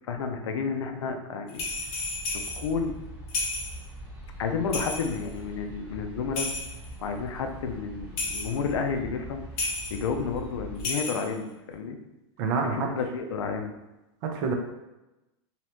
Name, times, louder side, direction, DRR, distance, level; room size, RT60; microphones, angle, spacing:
voice 1, 0.1-1.6 2.3-2.9 4.4-6.5 7.0-9.4 9.9-12.0 12.6-13.7, left 5 dB, 85° left, 5 dB, 0.4 m, -31 dB
Jingle Bells, 1.5-2.6 3.3-3.8 4.7-5.3 6.3-6.9 8.2-8.6 9.6-10.1 10.8-11.4, left 2 dB, 40° left, 0.8 m, -32 dB
sound 1, 1.6-10.8, right 1 dB, 15° right, 0.9 m, -43 dB
voice 2, 12.4-12.9 14.2-14.5, right 5 dB, 55° right, 3 dB, 0.5 m, -27 dB
2.8 x 2.0 x 2.9 m, 0.99 s
hypercardioid pair, 120°, 15 cm